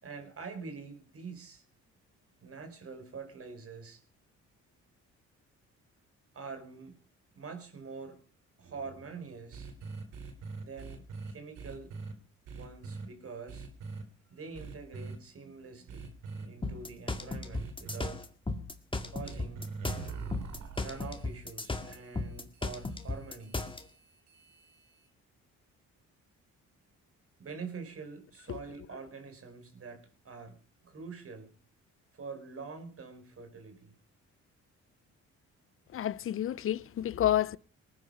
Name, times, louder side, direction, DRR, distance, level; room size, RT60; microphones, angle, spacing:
voice 1, 0.0-1.6 2.4-4.0 6.3-7.0 7.3-8.2 8.6-9.8 10.6-11.9 12.5-13.7 14.2-18.3 19.1-19.7 20.8-23.7 27.4-31.5 32.1-33.9, right 4 dB, 50° right, 4.6 m, -45 dB
sound 1, 9.5-12.1 12.5-13.1 13.5-14.0 14.5-15.2 15.9-16.5 17.5-18.1 19.2-25.1, right 4 dB, 85° right, 3.4 m, -44 dB
sound 2, 16.6-23.8, left 2 dB, 15° left, 2.0 m, -35 dB
voice 2, 35.9-37.6, left 12 dB, 45° left, 0.6 m, -29 dB
20.0 x 9.7 x 5.5 m
cardioid pair, 90°, 30 cm